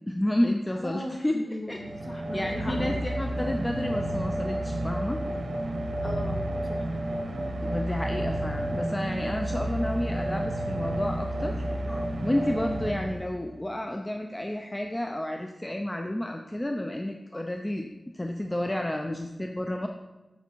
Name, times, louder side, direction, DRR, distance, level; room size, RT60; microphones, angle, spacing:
voice 1, 0.1-1.8 2.3-5.2 7.6-17.9 18.1-19.9, left 1 dB, 15° left, 3 dB, 0.5 m, -31 dB
voice 2, 0.8-2.9 6.0-6.8 9.9-10.0, left 1 dB, 40° left, 0 dB, 1.6 m, -38 dB
sound 1, 1.7-13.6, right 1 dB, 85° right, 1.1 m, -31 dB
7.0 x 6.9 x 4.5 m, 1.1 s
wide cardioid pair, 105°, 0 cm